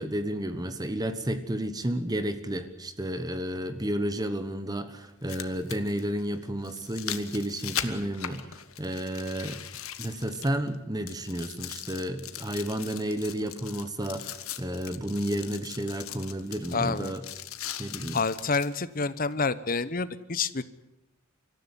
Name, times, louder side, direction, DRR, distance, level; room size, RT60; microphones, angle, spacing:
voice 1, 0.0-9.6 10.0-17.2 17.8-18.2, right 1 dB, 20° right, 10 dB, 1.2 m, -32 dB
sound 1, 1.8-1.9 3.8-3.9 5.0-10.8 11.1-18.7 19.3-19.4, left 11 dB, 80° left, 1.5 m, -40 dB
voice 2, 16.7-17.1 18.1-20.6, left 4 dB, 40° left, 16 dB, 1.0 m, -28 dB
25.0 x 14.0 x 9.8 m, 0.95 s
head